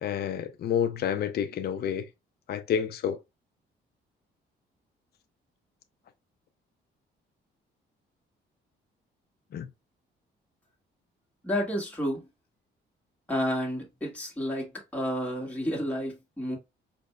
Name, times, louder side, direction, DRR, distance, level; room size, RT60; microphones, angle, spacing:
voice 1, 0.0-2.0 2.5-3.2 9.5-9.7, left 8 dB, 55° left, 0.5 m, -29 dB
voice 2, 11.4-12.2 13.3-16.6, equal, 5° left, 1.7 m, -30 dB
4.8 x 2.7 x 2.2 m
cardioid pair, 90°, 20 cm